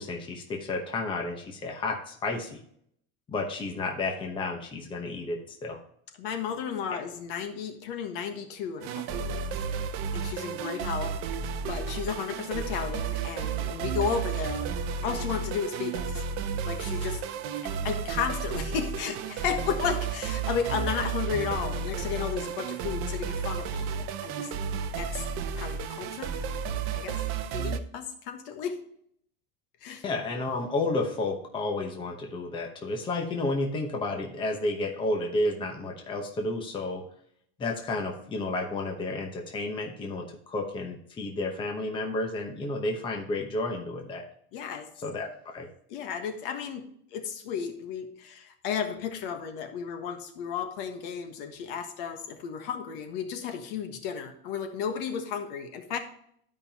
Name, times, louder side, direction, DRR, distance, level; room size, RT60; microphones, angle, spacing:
voice 1, 0.0-2.6 3.3-5.8 30.0-37.1 37.6-44.2 45.0-45.7, left 2 dB, 15° left, 2 dB, 0.9 m, -31 dB
voice 2, 6.2-9.5 9.8-11.2 11.7-14.7 15.0-16.2 16.6-17.2 17.6-24.5 25.0-25.3 25.6-26.3 26.9-27.2 27.5-28.8 29.8-30.0 44.5-44.9 45.9-56.0, left 7 dB, 65° left, 6 dB, 1.4 m, -33 dB
sound 1, 8.8-27.8, right 6 dB, 45° right, 0.7 m, -32 dB
12.5 x 5.3 x 2.8 m, 0.67 s
cardioid pair, 170°, 30 cm